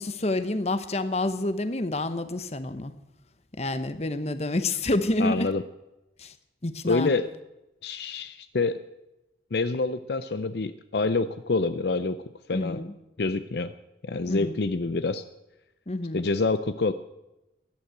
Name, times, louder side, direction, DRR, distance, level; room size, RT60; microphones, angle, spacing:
voice 1, 0.0-2.9 3.6-5.5 6.2-6.3 6.6-7.1 12.5-12.9 14.3-14.7 15.9-16.3, left 2 dB, 35° left, 11 dB, 1.0 m, -28 dB
voice 2, 5.2-5.6 6.8-7.3 7.8-8.8 9.5-12.2 12.5-12.8 13.2-13.7 14.0-15.2 16.1-16.9, left 3 dB, 65° left, 12 dB, 0.6 m, -27 dB
15.5 x 11.5 x 7.9 m, 0.96 s
head